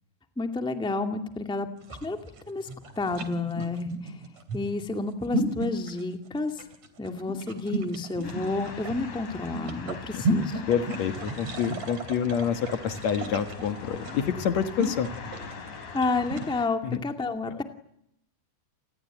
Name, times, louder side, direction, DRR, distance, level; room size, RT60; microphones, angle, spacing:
voice 1, 0.4-1.7 2.0-2.2 2.5-2.7 3.0-4.3 4.5-6.6 7.0-10.6 15.9-17.6, left 3 dB, ahead, 5 dB, 1.7 m, -30 dB
sound 1, 1.8-16.5, right 1 dB, 60° right, 4.1 m, -34 dB
sound 2, 8.2-16.6, left 5 dB, 85° left, 4.8 m, -42 dB
voice 2, 10.7-15.1 16.8-17.0, left 8 dB, 65° left, 9 dB, 2.6 m, -27 dB
29.5 x 20.5 x 9.2 m, 0.75 s
omnidirectional pair, 3.5 m